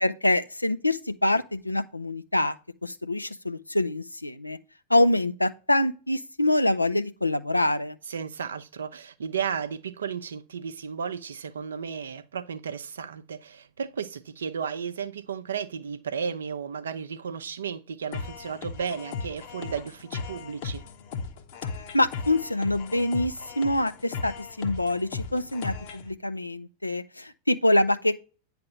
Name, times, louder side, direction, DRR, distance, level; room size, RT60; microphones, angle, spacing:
voice 1, 0.0-2.6 2.8-4.6 4.9-8.0 21.9-28.2, left 1 dB, 85° left, 0.5 m, -25 dB
voice 2, 8.1-20.8, right 7 dB, 70° right, 0.6 m, -34 dB
sound 1, 18.1-26.1, left 5 dB, 50° left, 1.0 m, -37 dB
9.5 x 3.4 x 6.0 m
figure-of-eight pair, 90°, 0 cm